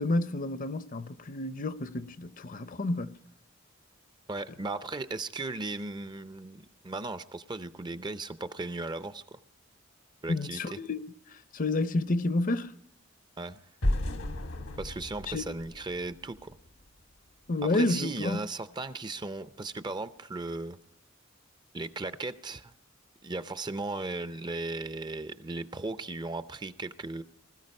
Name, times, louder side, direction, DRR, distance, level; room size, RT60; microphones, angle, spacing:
voice 1, 0.0-3.2 10.3-11.0 11.5-12.7 15.3-15.4 17.5-18.4, left 2 dB, 40° left, 0.6 m, -30 dB
voice 2, 4.3-9.2 10.2-10.8 13.4-13.6 14.8-16.5 17.7-20.8 21.7-22.7 23.2-27.2, right 2 dB, 20° right, 0.5 m, -36 dB
sound 1, 13.8-16.8, left 1 dB, 80° left, 1.4 m, -33 dB
20.0 x 13.5 x 5.4 m
head